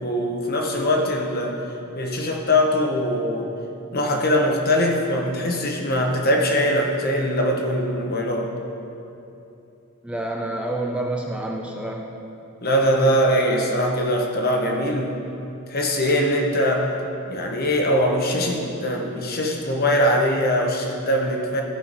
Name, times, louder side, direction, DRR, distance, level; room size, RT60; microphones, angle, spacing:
voice 1, 0.0-1.6 2.0-3.5 3.9-8.5 12.6-15.2 15.7-17.0 17.3-21.6, equal, 45° left, 1 dB, 1.0 m, -22 dB
voice 2, 10.0-12.1, right 1 dB, 5° right, -1 dB, 0.5 m, -28 dB
14.0 x 5.7 x 4.0 m, 2.9 s
head